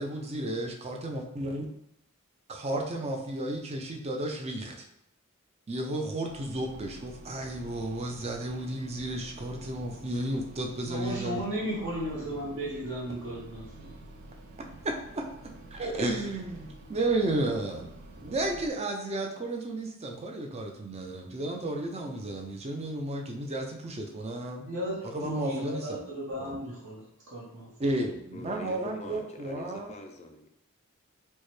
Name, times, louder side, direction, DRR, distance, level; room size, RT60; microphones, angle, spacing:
voice 1, 0.0-1.7 2.5-4.9 5.7-11.4 15.7-17.9 18.2-24.7 25.1-26.0 26.4-26.6 27.8-29.9, right 1 dB, 30° right, 1 dB, 0.5 m, -33 dB
sound 1, 6.2-18.7, right 2 dB, 80° right, 0.5 m, -49 dB
voice 2, 10.8-14.1 24.6-27.7, equal, 60° right, -7 dB, 1.0 m, -35 dB
voice 3, 28.3-30.5, left 2 dB, 30° left, 4 dB, 0.4 m, -43 dB
4.4 x 2.2 x 3.1 m, 0.78 s
head